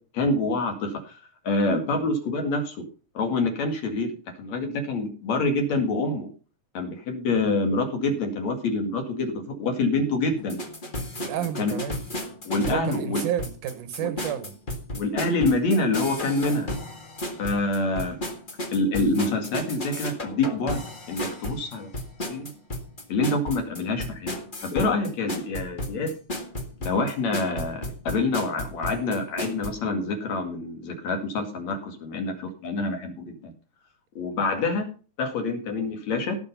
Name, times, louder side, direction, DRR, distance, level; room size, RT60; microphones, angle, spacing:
voice 1, 0.1-1.2 1.4-2.9 3.1-4.1 4.4-6.3 6.7-10.6 11.6-11.7 12.4-13.2 14.0-14.1 14.9-16.7 17.4-18.2 18.7-21.9 22.3-22.5 23.1-24.4 24.6-26.1 26.8-33.1 33.4-33.5 34.1-34.9 35.2-36.4, left 2 dB, 60° left, 3.4 m, -26 dB
sound 1, 10.4-29.7, left 1 dB, 20° left, 1.3 m, -34 dB
voice 2, 11.1-12.0 12.5-14.5, right 10 dB, 80° right, 2.7 m, -31 dB
17.0 x 6.3 x 5.5 m
omnidirectional pair, 3.6 m